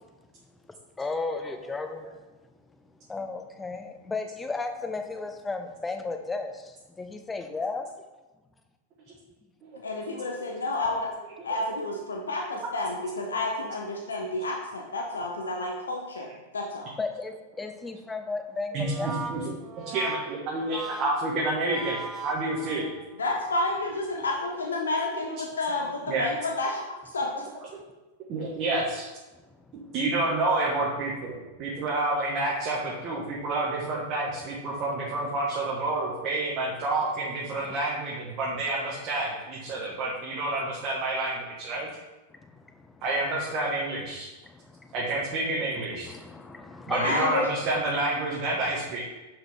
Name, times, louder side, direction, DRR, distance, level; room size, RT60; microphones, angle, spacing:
voice 1, 1.0-2.2 3.1-7.9 17.0-19.1 29.3-29.9 33.2-33.3 37.5-37.8 39.7-40.0 42.3-43.1 44.4-44.9 45.8-47.5, left 3 dB, 15° left, 6 dB, 0.7 m, -35 dB
voice 2, 9.8-11.1 11.4-16.9 23.2-26.8 27.1-27.5 46.9-47.5, left 2 dB, 85° left, 1 dB, 0.8 m, -30 dB
Brass instrument, 18.7-23.2, right 4 dB, 25° right, 0.8 m, -38 dB
voice 3, 18.7-19.5 19.9-22.9 26.1-26.3 28.3-29.1 29.9-41.9 43.0-44.3 44.9-46.1 46.9-49.0, right 2 dB, 40° right, -5 dB, 1.5 m, -29 dB
5.9 x 5.2 x 3.7 m, 1.1 s
hypercardioid pair, 105°, 0 cm